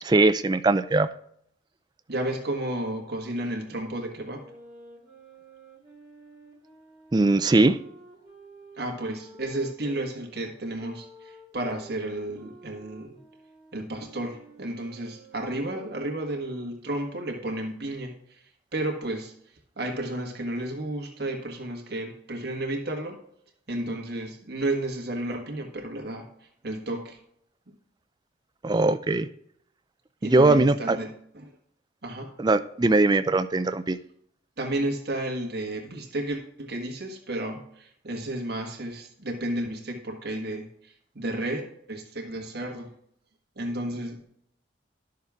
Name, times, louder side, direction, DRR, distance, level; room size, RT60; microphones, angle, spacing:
voice 1, 0.0-1.1 7.1-7.8 28.6-29.3 30.2-31.0 32.4-34.0, right 2 dB, 20° right, 11 dB, 0.4 m, -21 dB
voice 2, 2.1-4.4 8.8-13.2 13.7-18.4 18.7-19.3 19.8-23.2 23.7-26.3 26.6-27.2 27.7-27.8 30.2-31.5 32.0-32.3 34.6-42.9 43.5-44.2, right 1 dB, 55° right, 2 dB, 1.6 m, -32 dB
sound 1, 4.2-10.1 10.8-16.2, right 1 dB, 5° right, 2.6 m, -51 dB
11.5 x 6.6 x 3.6 m, 0.70 s
head